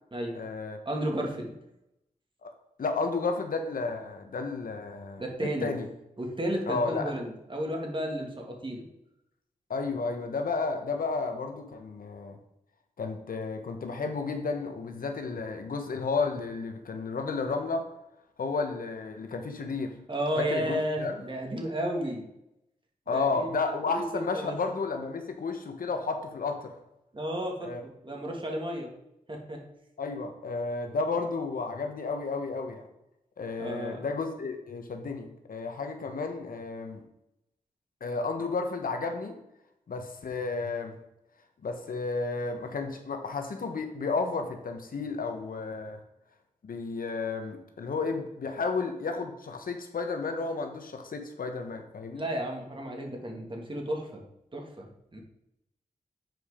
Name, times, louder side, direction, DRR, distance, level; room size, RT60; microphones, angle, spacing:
voice 1, 0.3-0.8 2.4-2.5 2.8-5.9 6.7-7.2 9.7-12.4 13.0-17.9 18.4-19.9 20.4-21.2 23.1-26.7 27.6-27.8 30.0-32.9 33.4-37.0 38.0-39.3 39.9-40.9 41.6-46.0 46.6-52.3, left 4 dB, 75° left, 5 dB, 1.2 m, -32 dB
voice 2, 0.9-1.5 5.2-5.7 6.2-8.8 20.1-22.2 23.1-23.5 23.9-24.6 27.1-28.9 29.3-29.6 33.6-34.0 52.1-54.2 54.5-55.2, equal, 35° right, 0 dB, 2.3 m, -33 dB
7.8 x 5.0 x 5.1 m, 0.84 s
cardioid pair, 50°, 14 cm